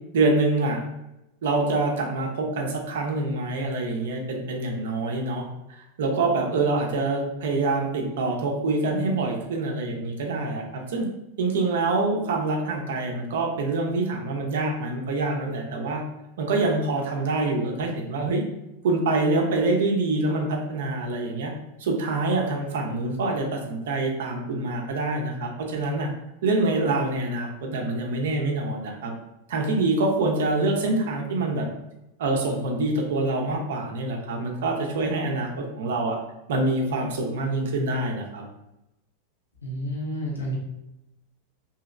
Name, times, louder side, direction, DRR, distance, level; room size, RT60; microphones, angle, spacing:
voice 1, 0.1-0.8 1.4-5.4 6.0-11.1 11.4-16.0 16.4-18.4 18.8-21.5 21.8-26.1 26.4-29.1 29.5-31.7 32.2-36.2 36.5-38.4, right 2 dB, 60° right, 1 dB, 0.6 m, -25 dB
voice 2, 39.6-40.6, equal, 80° left, -3 dB, 0.8 m, -30 dB
2.8 x 2.7 x 2.4 m, 0.91 s
figure-of-eight pair, 90°, 0 cm